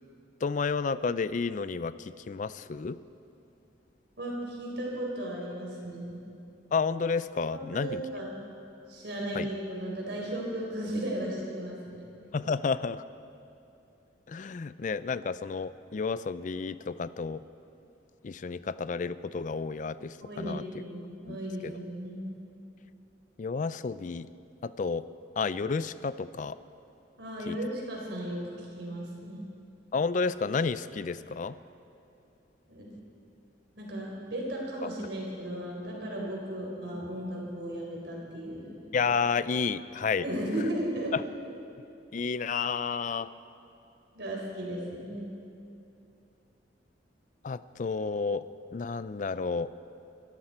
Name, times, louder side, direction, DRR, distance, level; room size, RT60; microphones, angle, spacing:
voice 1, 0.4-3.0 6.7-8.0 9.3-9.5 12.3-13.0 14.3-17.4 18.2-20.6 21.3-21.4 21.6-21.7 23.4-24.3 24.6-25.1 25.4-26.6 27.5-27.6 29.9-31.6 38.9-40.2 41.1-41.2 42.1-43.3 47.4-48.4 48.7-49.7, left 5 dB, 40° left, 15 dB, 0.4 m, -31 dB
voice 2, 4.2-6.2 7.5-8.3 8.9-12.0 20.2-22.3 27.2-29.4 32.7-33.0 33.8-38.8 40.2-41.2 44.1-45.3, right 1 dB, 65° right, -2 dB, 4.2 m, -35 dB
24.0 x 13.5 x 4.4 m, 2.7 s
head